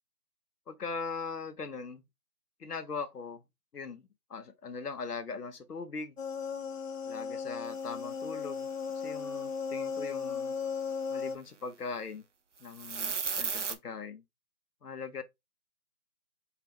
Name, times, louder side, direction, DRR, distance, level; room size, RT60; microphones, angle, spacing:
voice 1, 0.7-2.0 2.6-3.4 3.7-6.2 7.0-8.7 8.9-10.6 11.1-12.2 12.6-14.2 14.8-15.2, left 4 dB, 85° left, 0.9 m, -40 dB
sound 1, 6.2-11.4, left 5 dB, 60° left, 0.7 m, -36 dB
sound 2, 12.7-13.7, right 5 dB, 55° right, 0.5 m, -33 dB
4.5 x 2.5 x 3.4 m
figure-of-eight pair, 170°, 45 cm